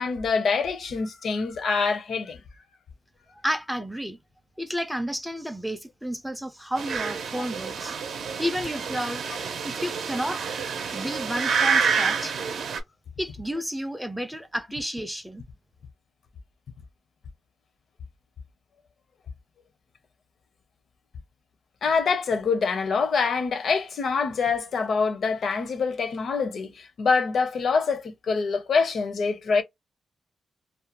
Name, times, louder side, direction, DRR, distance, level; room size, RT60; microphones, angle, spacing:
voice 1, 0.0-2.4 7.4-7.5 21.8-29.6, left 5 dB, 60° left, 0.5 m, -25 dB
voice 2, 3.4-4.2 4.6-7.9 8.4-9.2 9.6-10.4 10.9-12.3 13.2-15.4, equal, ahead, 0.4 m, -31 dB
sound 1, 6.8-12.8, right 6 dB, 70° right, 0.6 m, -28 dB
2.4 x 2.1 x 2.7 m
wide cardioid pair, 130°, 0 cm